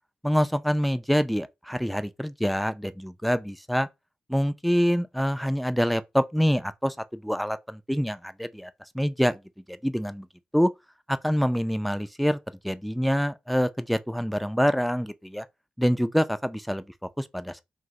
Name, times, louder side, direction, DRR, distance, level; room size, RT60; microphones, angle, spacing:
voice 1, 0.2-3.9 4.3-9.4 9.7-10.3 10.5-10.7 11.1-12.4 12.6-15.5 15.8-17.6, equal, ahead, 0.4 m, -26 dB
2.7 x 2.0 x 3.7 m
supercardioid pair, 45°, 3 cm